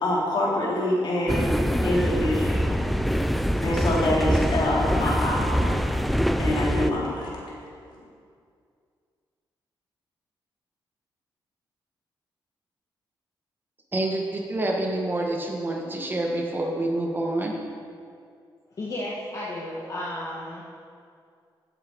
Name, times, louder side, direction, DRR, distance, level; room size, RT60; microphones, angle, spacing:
voice 1, 0.0-1.5 1.8-2.9 3.6-5.8 6.4-7.4, left 1 dB, 65° left, -5 dB, 3.6 m, -25 dB
sound 1, 1.3-6.9, equal, ahead, 0.5 m, -24 dB
voice 2, 13.9-17.6, right 1 dB, 25° right, 0 dB, 1.7 m, -27 dB
voice 3, 18.8-20.6, left 1 dB, 45° left, -6 dB, 1.8 m, -33 dB
15.5 x 7.9 x 4.8 m, 2.3 s
cardioid pair, 95°, 9 cm